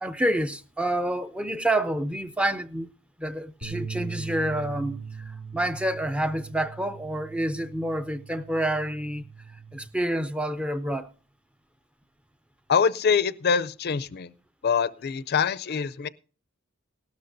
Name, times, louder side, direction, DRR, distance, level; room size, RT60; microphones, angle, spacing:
voice 1, 0.0-2.9 3.2-9.2 9.7-11.1, right 1 dB, 5° right, 0.5 m, -28 dB
sound 1, 3.6-9.9, right 6 dB, 70° right, 2.6 m, -40 dB
voice 2, 12.7-14.3 14.6-16.1, left 6 dB, 50° left, 0.5 m, -24 dB
17.5 x 12.5 x 2.6 m
head